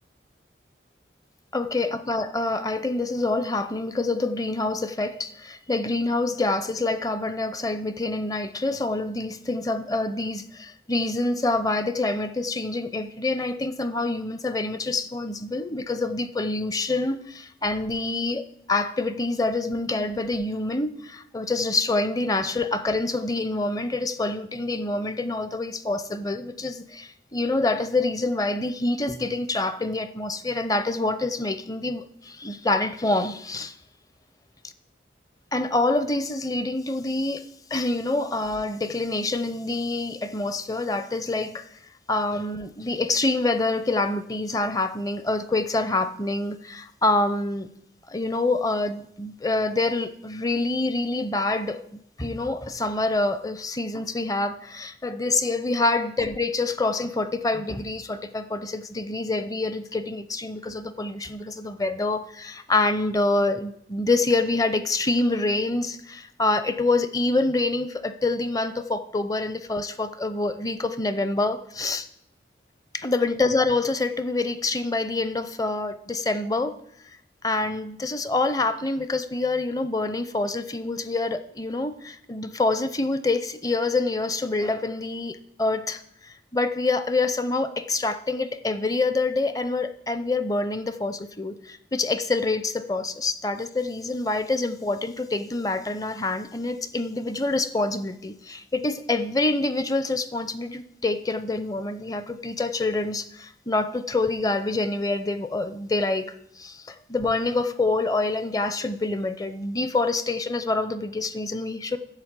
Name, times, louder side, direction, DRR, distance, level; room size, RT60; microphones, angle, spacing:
voice 1, 1.5-33.7 35.5-41.6 42.1-47.7 48.1-72.1 72.9-76.8 77.4-112.0, left 2 dB, 20° left, 0.6 m, -26 dB
10.5 x 7.3 x 8.1 m
head